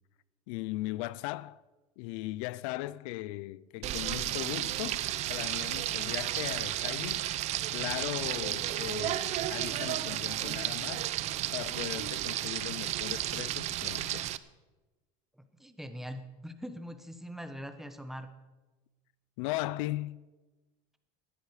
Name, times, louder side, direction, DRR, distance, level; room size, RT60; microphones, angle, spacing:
voice 1, 0.5-1.6 2.0-7.3 7.7-11.1 11.5-14.4 19.4-20.3, left 18 dB, 80° left, 0.5 m, -38 dB
Frying (food), 3.8-14.4, right 14 dB, 45° right, 0.6 m, -33 dB
voice 2, 15.4-18.3, equal, ahead, 1.1 m, -42 dB
19.0 x 13.0 x 5.0 m
cardioid pair, 145°, 17 cm